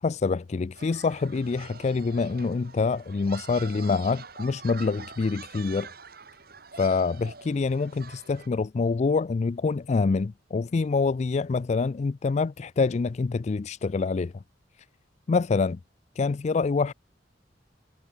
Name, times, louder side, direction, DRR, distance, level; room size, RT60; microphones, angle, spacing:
voice 1, 0.0-5.9 6.8-14.3 15.3-15.8 16.2-16.9, left 4 dB, 40° left, 0.4 m, -26 dB
sound 1, 0.7-8.5, right 5 dB, 55° right, 6.9 m, -45 dB
head